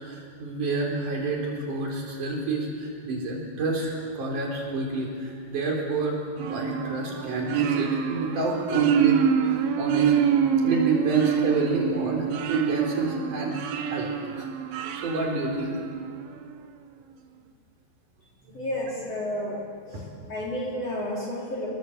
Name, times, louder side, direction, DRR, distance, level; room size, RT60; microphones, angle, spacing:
voice 1, 0.0-6.2 6.5-10.1 10.6-13.6 13.9-14.1 14.4-14.5 15.0-15.8 19.9-20.0, right 3 dB, 50° right, 0 dB, 5.3 m, -28 dB
sound 1, 6.4-16.2, right 8 dB, 70° right, 3.0 m, -26 dB
voice 2, 18.5-20.0 20.3-21.7, left 1 dB, 40° left, -3 dB, 4.5 m, -31 dB
26.5 x 19.5 x 8.1 m, 2.3 s
omnidirectional pair, 4.8 m